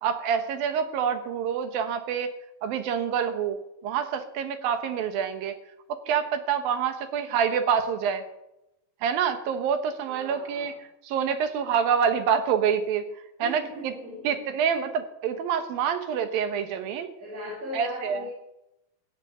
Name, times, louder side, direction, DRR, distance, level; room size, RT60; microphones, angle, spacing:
voice 1, 0.0-2.3 2.6-3.6 3.8-5.6 5.9-8.2 9.0-10.7 11.0-13.1 13.4-13.9 14.2-17.1 17.7-18.2, right 7 dB, 85° right, 8 dB, 3.0 m, -26 dB
voice 2, 10.0-10.7 13.4-14.6 17.2-18.3, left 1 dB, 45° right, -4 dB, 4.7 m, -38 dB
15.5 x 7.5 x 8.8 m, 0.88 s
omnidirectional pair, 4.1 m